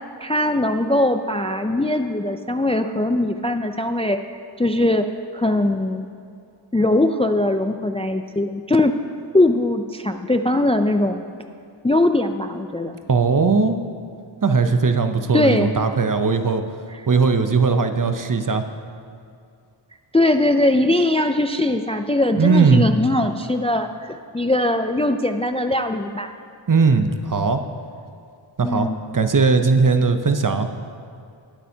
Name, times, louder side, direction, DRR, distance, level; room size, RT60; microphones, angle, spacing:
voice 1, 0.2-5.0 5.3-6.1 6.7-8.9 9.3-11.2 11.8-13.0 15.3-15.7 16.9-17.0 20.1-26.3 28.6-29.0, left 1 dB, 15° left, 7 dB, 0.3 m, -20 dB
voice 2, 13.1-13.8 14.4-16.6 17.1-18.6 22.3-22.8 26.7-27.6 28.6-28.9 29.1-30.7, right 4 dB, 45° right, 8 dB, 0.7 m, -18 dB
19.5 x 8.6 x 2.8 m, 2.4 s
wide cardioid pair, 55°, 47 cm